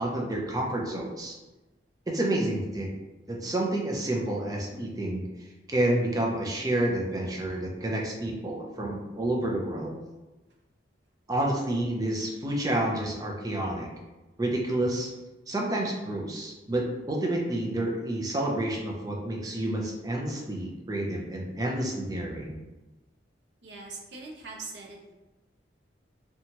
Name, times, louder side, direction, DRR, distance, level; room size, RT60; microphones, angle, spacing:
voice 1, 0.0-1.3 2.1-2.9 3.3-5.2 5.7-10.0 11.3-13.9 14.4-15.1 15.5-22.6, right 1 dB, 20° right, -2 dB, 0.5 m, -29 dB
voice 2, 23.6-25.1, right 3 dB, 65° right, -1 dB, 0.6 m, -42 dB
2.9 x 2.3 x 2.8 m, 1.1 s
head